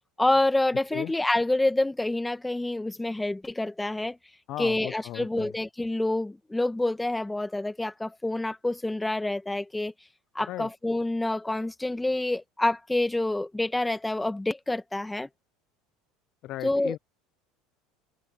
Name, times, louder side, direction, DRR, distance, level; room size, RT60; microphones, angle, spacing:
voice 1, 0.2-4.2 4.6-9.9 10.4-15.3 16.6-17.0, left 2 dB, 10° left, 2.1 m, -27 dB
voice 2, 4.5-5.5 10.5-10.7 16.4-17.0, left 15 dB, 55° left, 0.6 m, -36 dB
hypercardioid pair, 80°, 0 cm